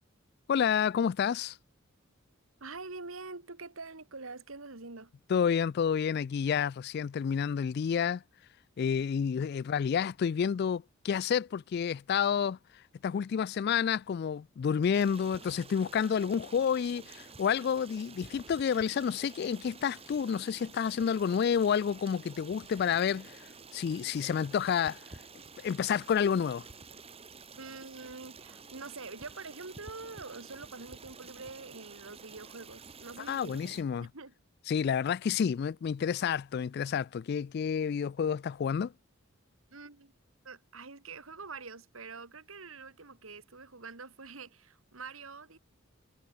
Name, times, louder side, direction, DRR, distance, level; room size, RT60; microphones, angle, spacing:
voice 1, 0.5-1.6 5.3-8.2 8.8-12.6 13.0-23.5 23.7-25.0 25.6-26.7 33.3-34.1 34.7-38.9, left 7 dB, 50° left, 0.3 m, -29 dB
voice 2, 2.6-5.1 27.6-34.3 39.7-40.1 40.4-45.6, right 3 dB, 85° right, 2.5 m, -45 dB
Stream, 14.9-33.8, right 4 dB, 30° right, 1.9 m, -51 dB
head